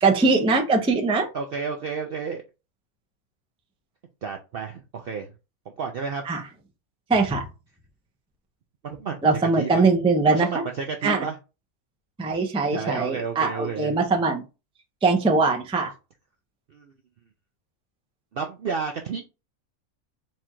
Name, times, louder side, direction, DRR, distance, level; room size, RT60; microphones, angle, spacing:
voice 1, 0.0-1.3 6.2-6.4 7.1-7.5 9.2-10.6 11.0-11.3 12.2-14.4 15.0-15.9, right 3 dB, 10° right, 2 dB, 0.4 m, -21 dB
voice 2, 1.3-2.4 4.2-5.3 5.8-6.2 8.8-9.2 9.6-9.8 10.3-11.4 12.7-13.9 16.7-16.9 18.3-19.2, right 5 dB, 65° right, 4 dB, 0.6 m, -31 dB
4.3 x 2.5 x 4.3 m, 0.29 s
omnidirectional pair, 1.5 m